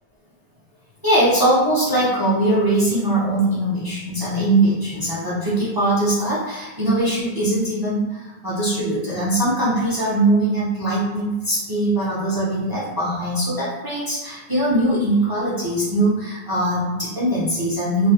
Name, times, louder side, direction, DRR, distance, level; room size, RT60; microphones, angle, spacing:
voice 1, 1.0-18.1, right 1 dB, 30° right, -8 dB, 0.4 m, -21 dB
2.3 x 2.1 x 2.7 m, 1.1 s
omnidirectional pair, 1.1 m